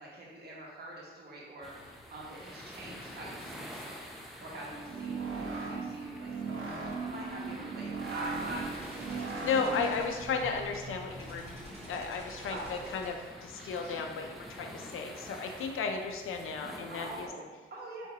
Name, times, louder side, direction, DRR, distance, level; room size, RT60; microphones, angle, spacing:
voice 1, 0.0-3.9 4.2-9.8 12.3-12.9 16.9-18.1, right 1 dB, 50° right, -4 dB, 1.3 m, -45 dB
sound 1, 1.6-17.3, equal, ahead, 0.6 m, -48 dB
sound 2, 4.7-14.0, right 2 dB, 30° right, 1.5 m, -46 dB
sound 3, 4.8-10.1, right 4 dB, 80° right, 0.7 m, -38 dB
voice 2, 9.4-11.4 11.9-17.3, left 5 dB, 85° left, 4 dB, 0.5 m, -34 dB
4.4 x 3.7 x 2.8 m, 1.3 s
cardioid pair, 85°, 21 cm